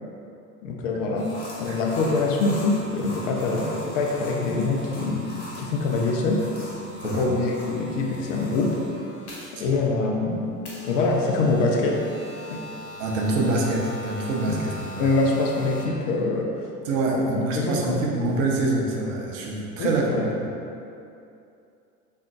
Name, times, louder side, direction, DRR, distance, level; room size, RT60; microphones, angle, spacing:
voice 1, 0.6-6.5 7.0-8.8 9.5-10.5 10.8-12.0 12.5-12.7 14.5-14.6 15.0-16.6 17.1-17.3 17.6-18.0 19.8-20.3, left 3 dB, 55° left, 0 dB, 0.5 m, -24 dB
sound 1, 1.2-9.7 10.7-15.9, left 1 dB, 75° left, 0.9 m, -40 dB
voice 2, 13.0-15.2 16.8-20.3, right 2 dB, 60° right, -1 dB, 0.6 m, -25 dB
3.5 x 2.5 x 2.3 m, 2.6 s
figure-of-eight pair, 75°, 45 cm